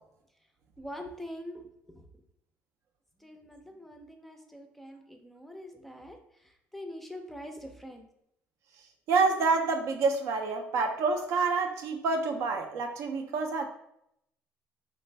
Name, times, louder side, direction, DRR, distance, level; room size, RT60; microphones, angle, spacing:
voice 1, 0.8-2.1 3.2-8.1, equal, 5° left, 0.4 m, -44 dB
voice 2, 9.1-13.7, right 4 dB, 70° right, 0.5 m, -27 dB
3.2 x 2.5 x 3.2 m
cardioid pair, 105°, 5 cm